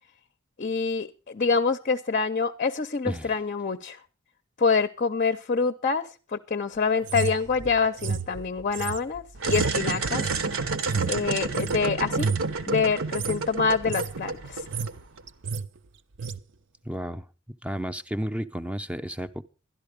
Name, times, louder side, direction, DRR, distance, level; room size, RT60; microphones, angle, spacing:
voice 1, 0.6-4.0 4.6-10.2 11.0-12.3 12.7-14.6, left 5 dB, 40° left, 0.6 m, -26 dB
voice 2, 3.0-3.4 16.8-17.3 17.6-19.4, equal, 5° right, 0.6 m, -32 dB
sound 1, 7.0-11.8 12.1-12.5 13.0-13.4 13.7-14.1 14.5-15.0 15.3-15.7 16.2-16.4, right 5 dB, 60° right, 0.6 m, -31 dB
sound 2, 9.4-15.2, right 4 dB, 75° right, 1.1 m, -30 dB
12.0 x 11.5 x 5.0 m
head